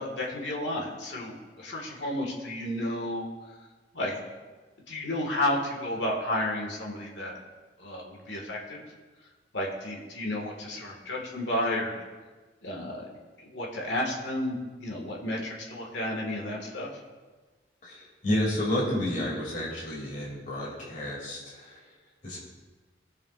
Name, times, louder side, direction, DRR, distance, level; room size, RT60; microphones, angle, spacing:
voice 1, 0.0-3.3 3.9-4.1 4.9-7.4 7.8-8.8 9.5-12.0 12.6-13.0 13.4-16.9, left 1 dB, 80° left, -1 dB, 1.9 m, -32 dB
voice 2, 17.8-21.8 22.2-22.4, left 1 dB, 45° left, -4 dB, 2.6 m, -30 dB
19.5 x 7.0 x 2.5 m, 1.3 s
head